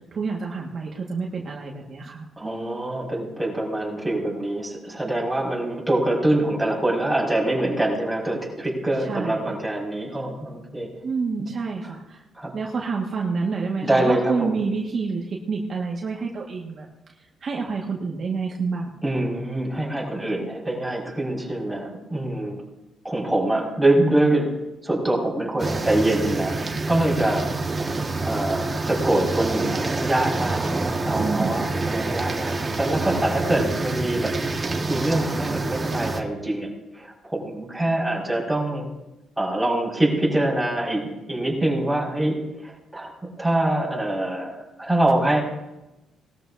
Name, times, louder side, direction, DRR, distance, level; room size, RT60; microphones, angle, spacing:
voice 1, 0.1-2.3 9.0-9.5 11.0-12.2 12.5-16.9 17.4-18.9 31.2-31.7, right 4 dB, 50° right, -2 dB, 1.8 m, -28 dB
voice 2, 2.4-10.9 11.8-11.9 12.3-12.5 13.8-14.6 19.0-22.6 23.0-24.5 24.8-27.5 27.8-34.3 34.9-38.9 39.4-42.4 42.6-43.1 43.4-45.4, right 1 dB, 5° right, -4 dB, 5.6 m, -24 dB
sound 1, 25.6-36.2, right 3 dB, 25° right, 1.7 m, -27 dB
20.0 x 13.0 x 2.8 m, 0.98 s
cardioid pair, 90°, 0 cm